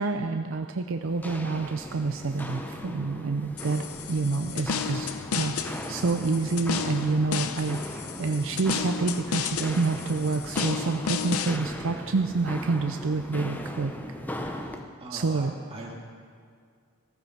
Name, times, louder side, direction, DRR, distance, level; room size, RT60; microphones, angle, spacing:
voice 1, 0.0-13.9 14.4-14.6 15.1-15.5, right 3 dB, 65° right, 6 dB, 0.5 m, -28 dB
Walk footsteps, 1.0-14.9, left 1 dB, 10° left, 0.7 m, -38 dB
sound 1, 3.6-11.6, left 6 dB, 85° left, 0.6 m, -33 dB
voice 2, 14.6-16.1, right 1 dB, 25° right, -3 dB, 2.6 m, -42 dB
15.5 x 14.0 x 4.7 m, 2.1 s
head